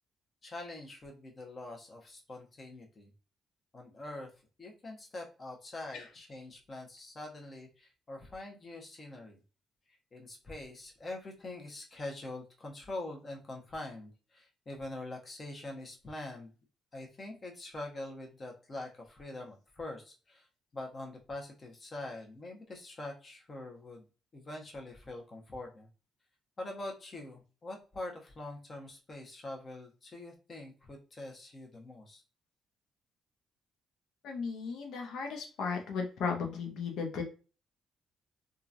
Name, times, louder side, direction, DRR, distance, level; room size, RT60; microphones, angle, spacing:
voice 1, 0.4-3.1 3.7-4.3 4.6-9.4 10.1-16.5 16.9-20.5 20.7-24.0 24.3-25.9 26.6-32.2, left 2 dB, 35° left, 1 dB, 1.0 m, -44 dB
voice 2, 34.2-37.2, left 5 dB, 80° left, 2 dB, 0.9 m, -35 dB
2.9 x 2.5 x 2.5 m, 0.34 s
cardioid pair, 90°, 0 cm